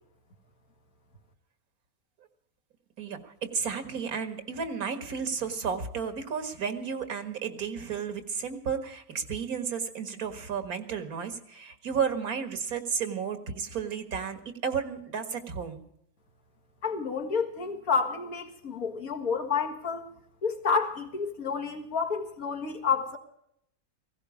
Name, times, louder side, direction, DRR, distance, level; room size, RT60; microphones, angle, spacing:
voice 1, 3.0-15.8, right 6 dB, 90° right, 2.1 m, -33 dB
voice 2, 16.8-20.1 20.4-23.2, left 5 dB, 80° left, 2.2 m, -29 dB
16.5 x 16.5 x 4.9 m
omnidirectional pair, 1.5 m